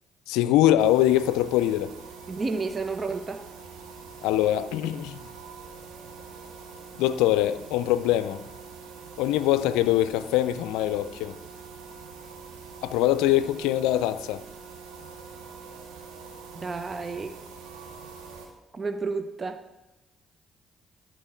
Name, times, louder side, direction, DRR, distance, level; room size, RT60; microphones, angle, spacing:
voice 1, 0.3-1.9 4.2-5.2 7.0-8.4 9.2-11.4 12.8-14.4, left 13 dB, 85° left, 0.4 m, -23 dB
sound 1, 0.8-18.5, right 5 dB, 85° right, 1.8 m, -44 dB
voice 2, 2.3-3.4 16.5-17.4 18.7-19.6, right 4 dB, 40° right, 0.7 m, -31 dB
11.5 x 4.4 x 7.0 m
hypercardioid pair, 55°, 0 cm